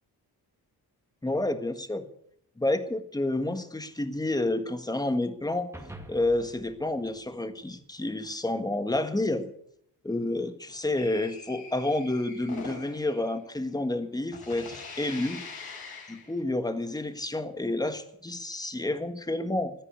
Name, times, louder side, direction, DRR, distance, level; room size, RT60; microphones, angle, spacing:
voice 1, 1.2-2.0 2.6-5.7 6.1-9.5 10.0-15.4 16.1-19.7, left 2 dB, 10° left, 8 dB, 1.5 m, -29 dB
sound 1, 5.7-8.2, right 1 dB, 5° right, 2.0 m, -48 dB
sound 2, 11.0-14.1 14.3-16.4, left 4 dB, 65° left, 4.8 m, -43 dB
15.0 x 9.9 x 8.3 m, 0.72 s
cardioid pair, 105°, 40 cm